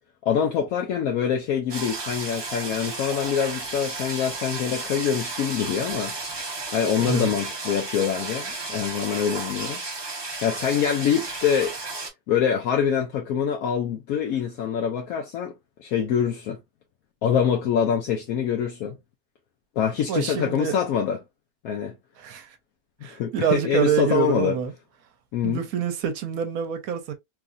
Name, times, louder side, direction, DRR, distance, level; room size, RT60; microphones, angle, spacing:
voice 1, 0.2-6.1 6.7-9.8 10.4-11.7 12.3-15.5 15.8-16.6 17.2-18.9 19.8-21.2 21.6-21.9 23.1-24.5 25.3-25.6, left 8 dB, 75° left, 1.0 m, -25 dB
sound 1, 1.7-12.1, right 3 dB, 45° right, 0.3 m, -33 dB
voice 2, 20.1-20.8 22.2-22.6 23.0-24.7 25.4-27.1, right 9 dB, 75° right, 1.0 m, -26 dB
3.1 x 2.5 x 2.3 m
omnidirectional pair, 1.6 m